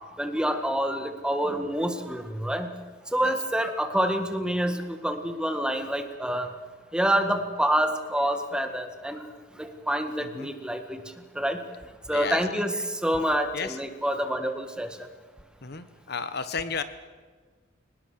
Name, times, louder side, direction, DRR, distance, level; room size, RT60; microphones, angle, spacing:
voice 1, 0.2-2.7 3.1-6.5 6.9-9.3 9.6-11.0 11.4-11.6 12.1-14.9, equal, 5° right, 7 dB, 1.8 m, -27 dB
voice 2, 12.1-12.9 13.5-13.8 15.6-16.8, left 5 dB, 55° left, 12 dB, 1.3 m, -33 dB
23.5 x 19.5 x 6.7 m, 1.4 s
head